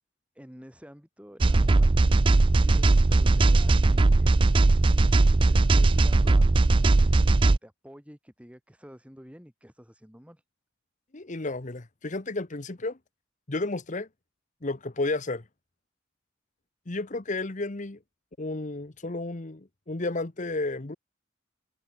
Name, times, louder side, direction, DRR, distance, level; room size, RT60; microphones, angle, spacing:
voice 1, 0.4-2.0 2.5-4.4 5.3-10.4, equal, 5° right, 5.8 m, -49 dB
sound 1, 1.4-7.6, right 2 dB, 25° right, 0.4 m, -19 dB
voice 2, 11.1-13.0 13.5-14.1 14.6-15.4 16.9-18.0 18.4-20.9, left 2 dB, 40° left, 1.1 m, -32 dB
head